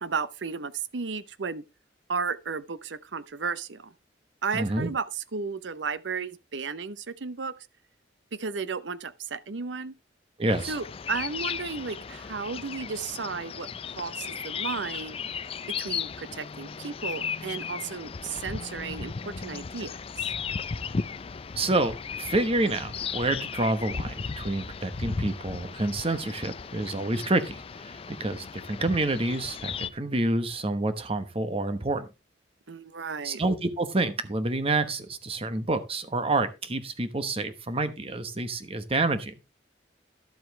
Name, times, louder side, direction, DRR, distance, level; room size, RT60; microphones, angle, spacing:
voice 1, 0.0-1.6 2.1-3.9 4.4-7.5 8.3-9.9 10.7-13.7 14.0-15.2 15.8-20.3 32.7-33.4, right 5 dB, 85° right, 0.7 m, -34 dB
voice 2, 4.5-4.9 10.4-10.8 21.5-27.9 28.2-32.0 33.2-39.3, right 2 dB, 30° right, 1.1 m, -28 dB
sound 1, 10.5-29.9, left 6 dB, 30° left, 0.4 m, -36 dB
12.0 x 7.7 x 3.2 m
head